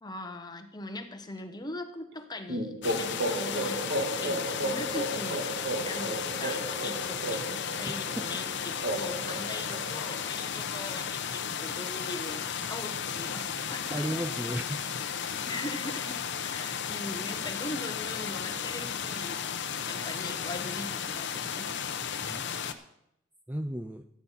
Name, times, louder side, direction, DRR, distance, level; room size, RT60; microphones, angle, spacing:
voice 1, 0.0-5.5 5.8-14.2 15.4-19.4 19.7-21.8, left 2 dB, 20° left, 7 dB, 1.1 m, -40 dB
sound 1, 2.5-10.2, right 1 dB, 60° right, 1.8 m, -34 dB
sound 2, 2.8-22.7, left 7 dB, 60° left, 0.8 m, -34 dB
voice 2, 13.9-14.8 22.2-22.4 23.5-24.0, right 1 dB, 10° right, 8 dB, 0.4 m, -34 dB
13.0 x 8.7 x 5.7 m, 0.79 s
head